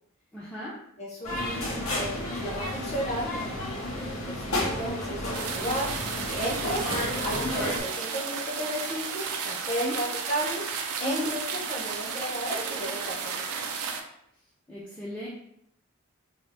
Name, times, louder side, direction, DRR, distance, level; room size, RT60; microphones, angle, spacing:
voice 1, 0.3-0.7 7.4-7.7 9.8-10.0 11.0-11.3 14.7-15.3, left 2 dB, 5° left, -8 dB, 0.4 m, -35 dB
voice 2, 1.0-5.9 6.2-10.6 11.0-13.2 13.5-13.7, equal, 30° left, -4 dB, 0.8 m, -34 dB
sound 1, 1.2-7.8, left 1 dB, 75° left, 0.8 m, -32 dB
sound 2, 5.3-14.0, right 5 dB, 90° right, 0.4 m, -33 dB
2.7 x 2.4 x 3.3 m, 0.74 s
head